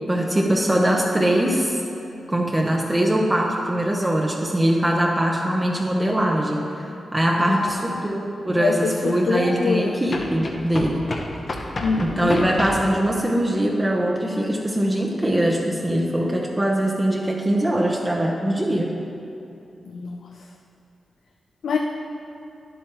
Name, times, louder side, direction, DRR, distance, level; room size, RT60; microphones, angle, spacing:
voice 1, 0.0-1.8 2.3-6.7 7.1-11.1 12.0-18.9, right 1 dB, 20° right, -1 dB, 0.7 m, -22 dB
voice 2, 7.4-8.1 8.5-10.0 11.8-12.4 19.9-20.2 21.6-21.8, left 4 dB, 85° left, 2 dB, 0.4 m, -25 dB
sound 1, 7.7-7.8 10.1-12.9, left 2 dB, 50° left, 0.8 m, -30 dB
10.0 x 7.9 x 3.0 m, 2.8 s
cardioid pair, 65°, 0 cm